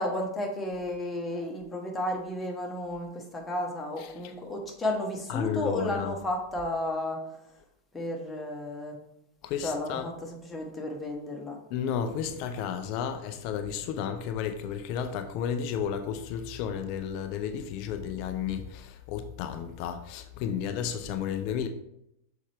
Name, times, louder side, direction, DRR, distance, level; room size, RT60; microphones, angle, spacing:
voice 1, 0.0-7.2 7.9-9.0 9.6-11.6, left 1 dB, 10° left, 1.2 m, -33 dB
voice 2, 5.3-6.1 9.4-10.1 11.7-21.7, left 8 dB, 45° left, 0.4 m, -32 dB
6.3 x 4.4 x 3.4 m
figure-of-eight pair, 90°, 0 cm